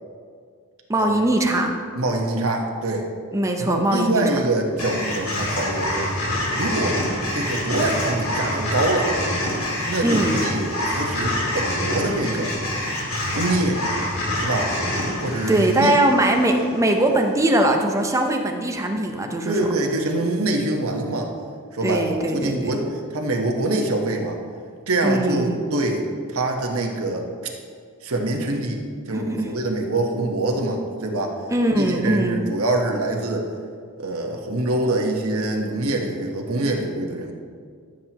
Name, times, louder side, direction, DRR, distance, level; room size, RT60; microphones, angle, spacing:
voice 1, 0.9-1.7 3.3-4.4 10.0-10.4 15.5-19.7 21.8-22.8 25.0-25.6 29.1-29.5 31.5-32.4, right 1 dB, 15° right, 3 dB, 0.7 m, -21 dB
voice 2, 1.9-3.1 3.6-6.1 6.5-7.0 7.3-9.1 9.9-12.5 13.3-13.8 14.4-14.7 15.2-16.0 19.4-21.3 21.7-24.4 24.9-27.2 28.0-31.4 31.7-33.5 34.0-37.3, right 2 dB, 75° right, 1 dB, 1.3 m, -24 dB
sound 1, 4.8-17.1, left 1 dB, 70° left, 2.4 m, -26 dB
14.5 x 7.6 x 3.0 m, 2.1 s
head